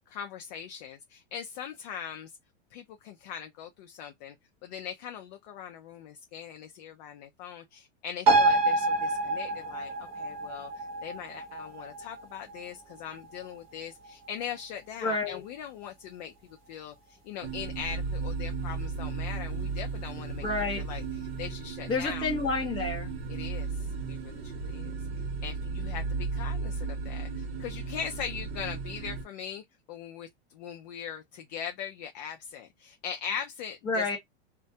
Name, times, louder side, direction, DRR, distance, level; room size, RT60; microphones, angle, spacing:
voice 1, 0.1-2.3 2.7-4.3 4.6-16.3 16.7-20.5 20.9-21.0 21.4-22.3 23.3-23.8 24.1-25.0 25.4-34.2, left 8 dB, 40° left, 0.4 m, -40 dB
sound 1, 8.3-15.2 15.6-15.7, right 2 dB, 20° right, 0.8 m, -29 dB
voice 2, 15.0-15.4 20.4-20.9 21.9-23.1 33.8-34.2, left 3 dB, 15° left, 1.0 m, -29 dB
sound 2, 17.4-29.2, right 4 dB, 45° right, 0.8 m, -35 dB
2.2 x 2.1 x 2.7 m
supercardioid pair, 155°, 33 cm